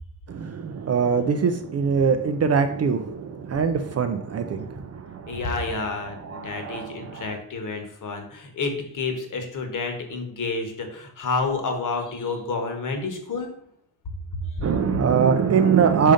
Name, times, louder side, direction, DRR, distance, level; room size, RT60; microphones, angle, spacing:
voice 1, 0.3-5.4 6.1-7.3 14.6-16.1, right 6 dB, 40° right, 8 dB, 0.4 m, -23 dB
voice 2, 5.3-13.5 14.6-14.7, left 3 dB, 50° left, 5 dB, 1.2 m, -29 dB
5.5 x 5.0 x 3.7 m, 0.70 s
wide cardioid pair, 170°, 40 cm